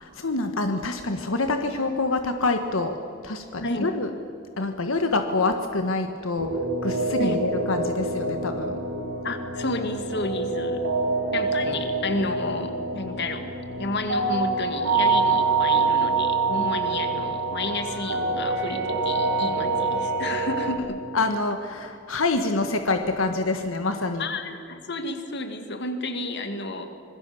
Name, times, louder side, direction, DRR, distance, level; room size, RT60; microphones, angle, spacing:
voice 1, 0.0-2.9 3.2-4.1 4.6-6.5 6.8-8.8 21.1-24.3, left 3 dB, 90° left, 6 dB, 1.5 m, -26 dB
sound 1, 6.4-20.8, right 3 dB, 85° right, 3.9 m, -26 dB
voice 2, 9.2-10.8 11.3-13.5 13.8-21.0 24.2-26.8, left 2 dB, 60° left, 7 dB, 2.3 m, -31 dB
26.0 x 21.0 x 7.1 m, 2.5 s
head